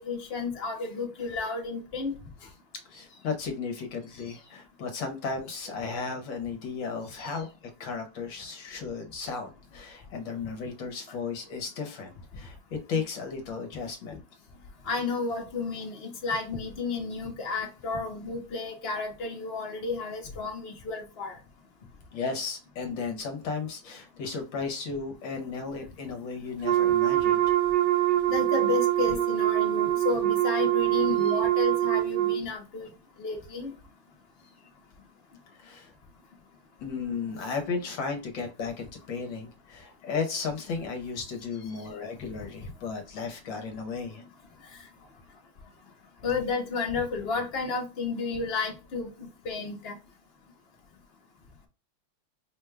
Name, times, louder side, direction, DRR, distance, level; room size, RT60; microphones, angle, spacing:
voice 1, 0.0-2.1 7.1-7.4 14.9-21.4 28.3-32.9 33.2-33.7 41.7-41.8 42.6-42.7 46.2-50.0, left 4 dB, 50° left, 0.7 m, -32 dB
voice 2, 2.9-7.5 7.8-14.2 22.1-27.4 35.6-35.9 36.8-44.2, left 5 dB, 70° left, 1.4 m, -34 dB
Wind instrument woodwind instrument, 26.6-32.4, right 13 dB, 75° right, 0.9 m, -24 dB
5.1 x 2.2 x 3.3 m
omnidirectional pair, 2.4 m